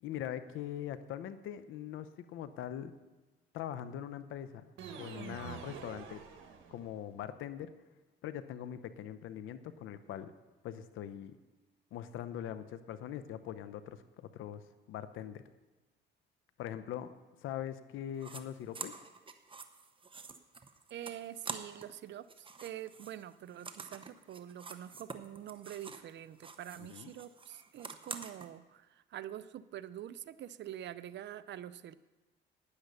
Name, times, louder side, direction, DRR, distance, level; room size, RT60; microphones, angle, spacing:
voice 1, 0.0-2.9 3.5-6.2 6.7-7.7 8.2-10.3 10.6-11.4 11.9-15.4 16.6-17.1 17.4-19.0 26.8-27.1, left 10 dB, 85° left, 12 dB, 0.7 m, -42 dB
sound 1, 4.8-7.1, right 6 dB, 80° right, 1.4 m, -47 dB
sound 2, 18.2-18.4 18.7-22.0 22.2-26.1 26.4-28.5, right 4 dB, 25° right, 0.9 m, -47 dB
voice 2, 20.9-31.9, right 11 dB, 65° right, 16 dB, 0.5 m, -46 dB
9.9 x 9.7 x 6.8 m, 1.2 s
cardioid pair, 90°, 20 cm